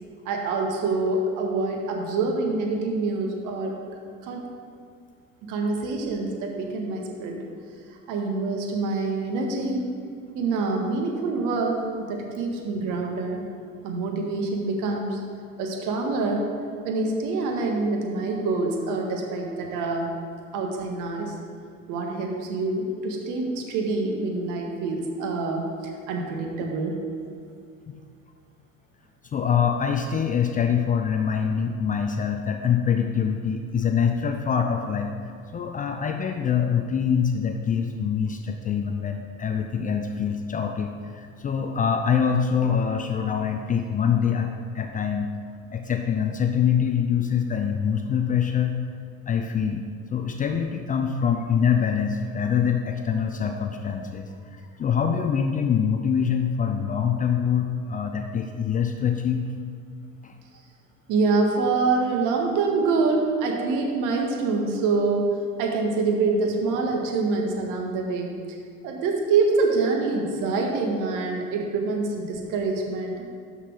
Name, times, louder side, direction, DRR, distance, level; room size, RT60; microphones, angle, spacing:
voice 1, 0.3-3.8 4.2-4.4 5.4-7.4 8.1-9.9 10.3-13.4 13.8-15.2 15.6-16.5 16.8-20.1 20.5-21.3 21.9-27.0 61.1-65.3 65.6-68.6 68.8-73.2, right 3 dB, 50° right, 1 dB, 1.8 m, -26 dB
voice 2, 29.3-35.2 35.5-45.3 45.7-48.8 49.3-49.8 50.1-59.4 60.2-60.3, left 7 dB, 20° left, 4 dB, 0.5 m, -24 dB
12.0 x 4.2 x 6.3 m, 2.2 s
figure-of-eight pair, 65°, 40 cm